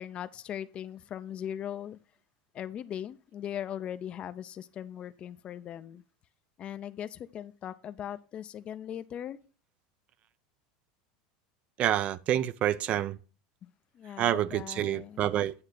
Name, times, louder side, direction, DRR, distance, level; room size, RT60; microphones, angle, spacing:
voice 1, 0.0-2.0 2.5-6.0 6.6-9.4 13.6-13.7 13.9-15.3, left 10 dB, 35° left, 0.5 m, -39 dB
voice 2, 11.8-13.2 14.2-15.5, right 11 dB, 40° right, 0.5 m, -28 dB
9.6 x 3.2 x 6.5 m
supercardioid pair, 125°, 3 cm